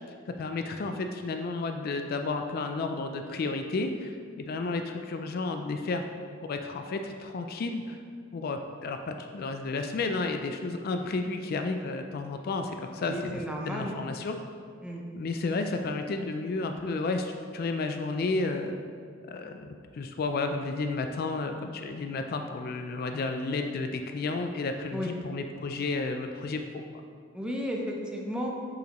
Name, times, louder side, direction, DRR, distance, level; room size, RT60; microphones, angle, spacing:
voice 1, 0.3-6.1 6.4-8.0 8.3-14.4 15.1-18.8 19.3-26.6, left 3 dB, 50° left, 6 dB, 0.3 m, -32 dB
voice 2, 13.0-14.0 14.8-15.0 24.9-25.1 27.3-28.5, equal, 5° right, -1 dB, 0.6 m, -33 dB
6.5 x 5.5 x 3.0 m, 2.1 s
head